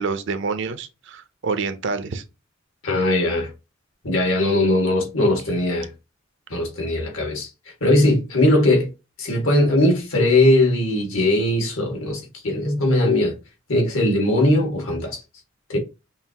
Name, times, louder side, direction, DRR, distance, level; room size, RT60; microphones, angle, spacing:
voice 1, 0.0-2.2, right 4 dB, 65° right, 0.6 m, -27 dB
voice 2, 2.8-3.5 4.0-5.9 6.5-7.5 7.8-8.9 9.2-13.4 13.7-15.2 15.7-15.8, left 1 dB, 80° left, 1.8 m, -19 dB
5.7 x 2.5 x 2.9 m
head